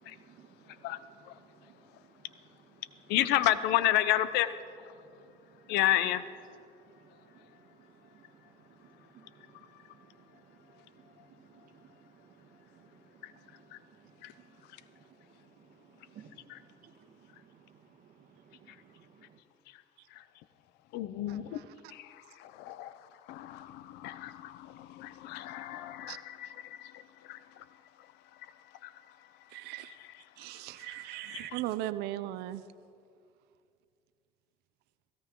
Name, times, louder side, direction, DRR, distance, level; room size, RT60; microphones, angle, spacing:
voice 1, 0.0-2.2 2.5-2.8 4.9-5.8 6.8-19.4, right 7 dB, 55° right, 6 dB, 1.5 m, -60 dB
voice 2, 3.1-4.5 5.7-6.2 13.2-13.3 14.2-14.3 16.5-16.6 20.9-21.6 21.9-23.0 23.3-27.0 27.3-27.6 28.8-28.9 31.3-31.5, left 13 dB, 85° left, 14 dB, 0.7 m, -31 dB
voice 3, 21.3-21.7 26.1-26.2 29.5-30.0 30.4-32.6, right 14 dB, 85° right, 14 dB, 0.5 m, -38 dB
17.0 x 16.5 x 3.8 m, 2.4 s
cardioid pair, 105°, 17 cm